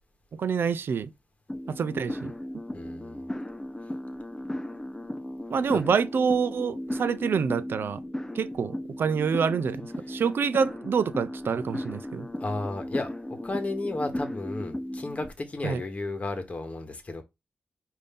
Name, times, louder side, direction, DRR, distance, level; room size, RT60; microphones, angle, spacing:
voice 1, 0.4-1.1 1.7-2.3 5.5-8.0 8.4-12.3 15.6-15.8, right 6 dB, 70° right, 0.4 m, -27 dB
sound 1, 1.5-15.3, left 1 dB, 10° left, 0.5 m, -36 dB
voice 2, 2.7-3.2 5.7-5.8 12.4-13.1 13.4-17.2, left 2 dB, 35° left, 1.1 m, -33 dB
5.3 x 2.6 x 3.5 m
wide cardioid pair, 90°, 4 cm